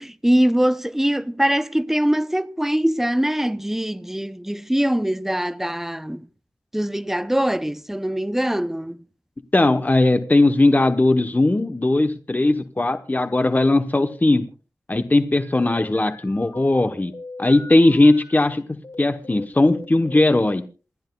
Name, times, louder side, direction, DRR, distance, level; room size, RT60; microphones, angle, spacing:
voice 1, 0.0-6.3 6.7-9.0, equal, 5° right, 0.6 m, -22 dB
voice 2, 9.5-14.4 14.9-17.1 17.4-18.6 19.0-20.6, left 2 dB, 25° left, 0.9 m, -18 dB
sound 1, 15.3-18.3 18.8-20.4, left 2 dB, 65° left, 3.2 m, -42 dB
28.0 x 10.5 x 2.3 m
wide cardioid pair, 75°, 6 cm